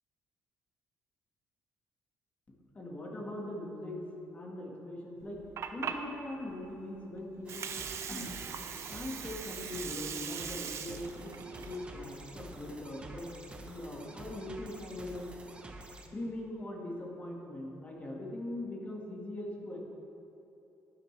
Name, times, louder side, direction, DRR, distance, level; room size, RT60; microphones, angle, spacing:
voice 1, 2.7-4.0 4.3-5.4 5.7-7.7 8.1-8.3 8.9-11.3 11.6-15.3 16.0-19.8, left 1 dB, 25° left, -1 dB, 1.6 m, -41 dB
Water, 5.2-13.2, right 7 dB, 50° right, 0.5 m, -42 dB
sound 1, 7.5-16.1, right 1 dB, 20° right, 0.7 m, -49 dB
10.5 x 10.5 x 3.3 m, 2.9 s
cardioid pair, 140°, 6 cm